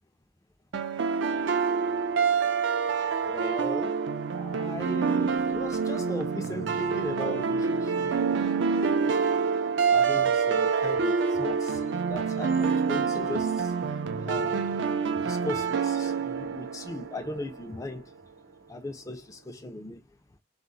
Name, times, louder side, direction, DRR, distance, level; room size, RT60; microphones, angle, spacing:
sound 1, 0.7-17.6, right 5 dB, 70° right, 0.4 m, -27 dB
voice 1, 3.3-4.0 4.3-9.3 9.9-13.7 14.3-14.8 15.2-18.0 18.7-20.0, left 1 dB, 15° left, 0.4 m, -38 dB
2.4 x 2.0 x 3.9 m
head